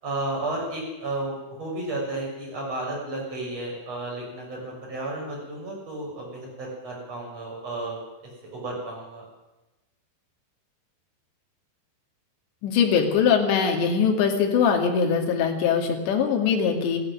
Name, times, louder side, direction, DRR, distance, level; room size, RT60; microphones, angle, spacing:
voice 1, 0.0-8.0 8.5-9.2, right 2 dB, 30° right, -3 dB, 7.8 m, -32 dB
voice 2, 12.6-17.0, left 6 dB, 65° left, 2 dB, 4.4 m, -22 dB
17.0 x 15.5 x 10.0 m, 1.0 s
omnidirectional pair, 5.6 m